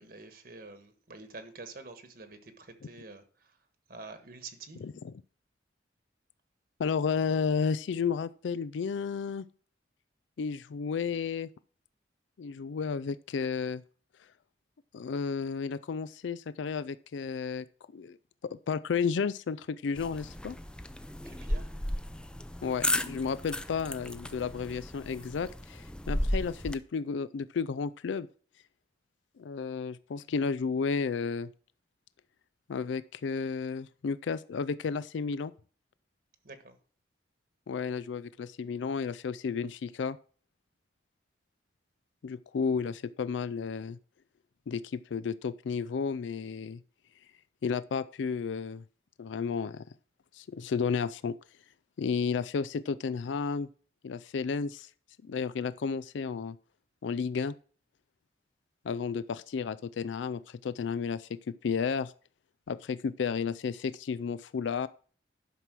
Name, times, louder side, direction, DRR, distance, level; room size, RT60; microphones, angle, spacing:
voice 1, 0.0-3.6 3.9-4.8 21.2-21.7 36.4-36.8, right 3 dB, 50° right, 1.3 m, -47 dB
voice 2, 6.8-9.5 10.4-11.5 12.4-13.8 14.9-17.7 17.9-18.2 18.5-20.6 22.6-28.3 29.4-31.5 32.7-35.5 37.7-40.2 42.2-44.0 44.7-46.8 47.6-48.8 49.2-49.8 50.3-51.4 52.0-53.7 54.0-54.9 55.3-56.6 57.0-57.5 58.8-62.1 62.7-64.9, left 5 dB, 80° left, 0.4 m, -32 dB
sound 1, 20.0-26.7, left 1 dB, 5° left, 0.4 m, -34 dB
11.5 x 6.0 x 6.1 m
head